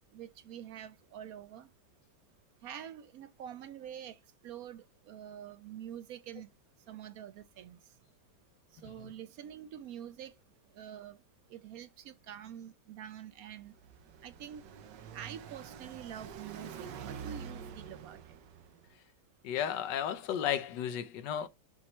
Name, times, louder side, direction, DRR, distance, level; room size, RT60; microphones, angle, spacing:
voice 1, 0.1-1.7 2.6-6.5 6.9-7.8 8.7-10.3 10.7-11.2 11.5-13.7 14.2-14.6 15.1-18.3, right 10 dB, 70° right, 0.9 m, -46 dB
Car passing by, 13.4-18.9, right 7 dB, 90° right, 1.5 m, -47 dB
voice 2, 19.4-21.5, left 9 dB, 85° left, 1.4 m, -33 dB
7.4 x 3.1 x 4.3 m
omnidirectional pair, 1.9 m